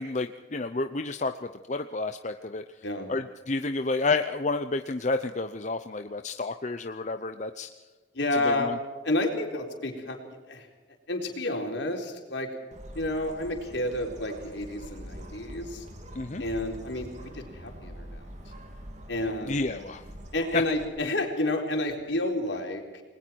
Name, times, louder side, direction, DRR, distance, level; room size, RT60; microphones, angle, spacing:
voice 1, 0.0-1.3 1.7-2.6 3.1-7.7 8.4-8.8 16.1-16.4 19.5-20.0 20.5-20.6, left 3 dB, 40° left, 8 dB, 0.7 m, -30 dB
voice 2, 8.1-8.7 9.0-10.2 10.5-10.7 11.1-12.5 12.9-15.9 16.4-18.2 19.1-19.7 20.3-23.0, left 1 dB, 70° left, 2 dB, 4.2 m, -30 dB
Bird, 12.7-20.9, equal, 35° right, 3.0 m, -44 dB
29.0 x 20.5 x 4.6 m, 1.3 s
head